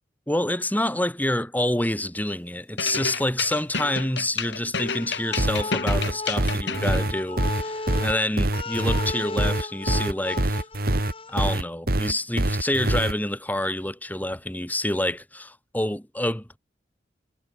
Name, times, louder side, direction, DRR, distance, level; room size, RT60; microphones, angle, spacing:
voice 1, 0.3-10.6 11.3-16.6, left 1 dB, 10° left, 3.0 m, -27 dB
sound 1, 2.8-7.0, left 5 dB, 70° left, 4.2 m, -30 dB
sound 2, 4.9-11.6, left 3 dB, 30° left, 5.3 m, -35 dB
sound 3, 5.4-13.1, right 1 dB, 55° right, 2.4 m, -24 dB
head